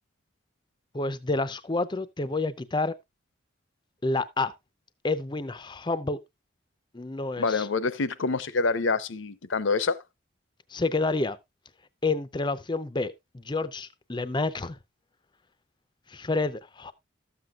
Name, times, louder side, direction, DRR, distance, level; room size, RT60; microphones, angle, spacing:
voice 1, 0.9-2.9 4.0-4.5 5.0-6.2 6.9-7.7 10.7-11.4 12.0-14.8 16.1-16.9, left 3 dB, 20° left, 0.5 m, -29 dB
voice 2, 7.4-10.0, left 4 dB, 70° left, 0.7 m, -26 dB
13.0 x 7.7 x 2.3 m
head